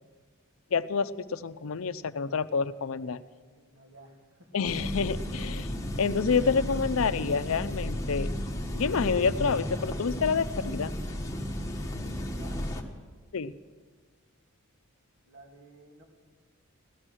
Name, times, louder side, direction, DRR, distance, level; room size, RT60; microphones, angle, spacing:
voice 1, 0.7-3.2 4.5-5.7 6.0-8.3 8.7-11.0 13.3-13.5, left 5 dB, 70° left, 13 dB, 0.5 m, -28 dB
voice 2, 3.6-4.5 11.8-12.6 15.2-16.0, right 1 dB, 75° right, 0 dB, 2.6 m, -53 dB
sound 1, 4.6-12.8, left 1 dB, 15° left, 1.1 m, -34 dB
16.5 x 12.5 x 6.3 m, 1.5 s
head